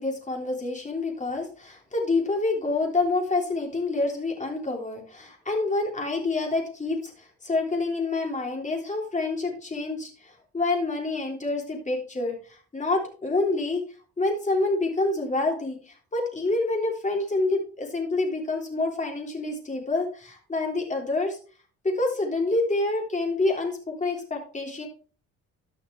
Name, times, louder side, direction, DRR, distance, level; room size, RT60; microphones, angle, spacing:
voice 1, 0.0-13.8 14.2-21.4 21.8-24.9, left 2 dB, 25° left, 1 dB, 3.4 m, -27 dB
13.5 x 5.9 x 3.4 m, 0.38 s
cardioid pair, 90°, 30 cm